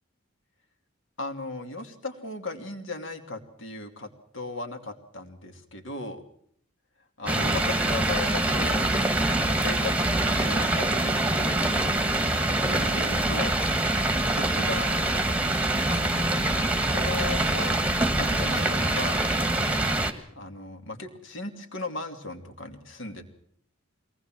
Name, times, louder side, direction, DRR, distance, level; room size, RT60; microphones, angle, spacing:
voice 1, 1.2-6.2 7.2-8.9 9.4-11.9 12.5-13.6 14.2-15.0 15.9-16.3 16.8-19.3 20.3-23.2, left 2 dB, 55° left, 6 dB, 2.7 m, -37 dB
sound 1, 7.3-20.1, right 2 dB, 5° right, 1.6 m, -25 dB
23.0 x 19.0 x 7.6 m, 0.65 s
head